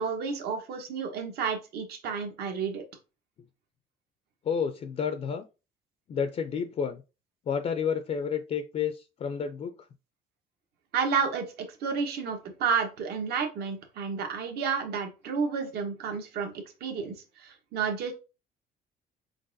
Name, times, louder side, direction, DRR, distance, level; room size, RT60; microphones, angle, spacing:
voice 1, 0.0-2.8 10.9-18.1, right 6 dB, 70° right, 1.1 m, -31 dB
voice 2, 4.4-5.4 6.1-7.0 7.5-9.9, left 7 dB, 40° left, 0.4 m, -30 dB
4.6 x 3.8 x 2.6 m
cardioid pair, 110°, 17 cm